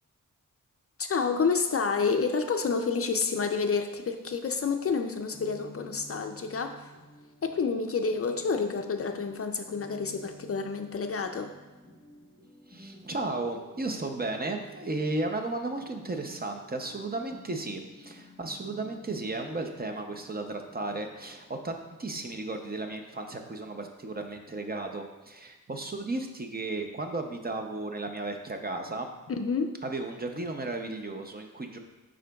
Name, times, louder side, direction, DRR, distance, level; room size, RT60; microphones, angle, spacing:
voice 1, 1.0-6.9 7.4-11.5 29.4-29.8, left 5 dB, 45° left, 6 dB, 0.4 m, -29 dB
sound 1, 5.3-24.9, equal, 15° left, 1.5 m, -53 dB
voice 2, 12.7-29.1 29.8-31.8, right 2 dB, 30° right, 4 dB, 0.6 m, -34 dB
11.0 x 3.8 x 2.3 m, 1.2 s
wide cardioid pair, 105°, 33 cm